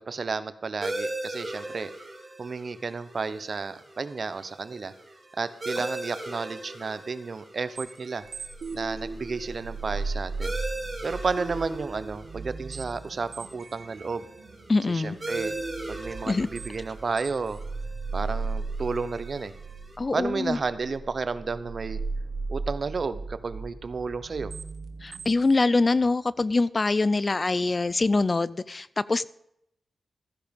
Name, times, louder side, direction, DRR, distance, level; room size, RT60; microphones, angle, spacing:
voice 1, 0.0-1.9 2.4-4.9 5.4-8.2 8.7-10.6 11.0-14.3 14.9-15.5 15.9-17.6 18.1-19.5 20.1-22.0 22.5-24.5, right 4 dB, 55° right, 13 dB, 0.9 m, -32 dB
sound 1, 0.8-20.0, right 1 dB, 20° right, 3.6 m, -40 dB
sound 2, 7.8-26.1, right 3 dB, 80° right, 1.5 m, -37 dB
voice 2, 14.7-15.2 16.2-16.5 20.0-20.6 25.0-29.2, left 3 dB, 40° left, 19 dB, 0.4 m, -24 dB
14.5 x 10.0 x 5.3 m, 0.76 s
cardioid pair, 80°, 0 cm